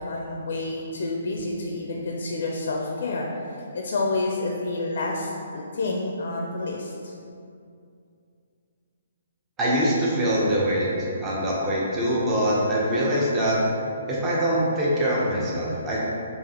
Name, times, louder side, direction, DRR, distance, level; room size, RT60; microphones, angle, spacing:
voice 1, 0.0-7.1, left 2 dB, 65° left, 0 dB, 0.4 m, -29 dB
voice 2, 9.6-10.9 11.2-13.6 14.1-16.0, equal, 20° right, -6 dB, 0.8 m, -23 dB
4.9 x 2.4 x 2.9 m, 2.5 s
hypercardioid pair, 150°, 0 cm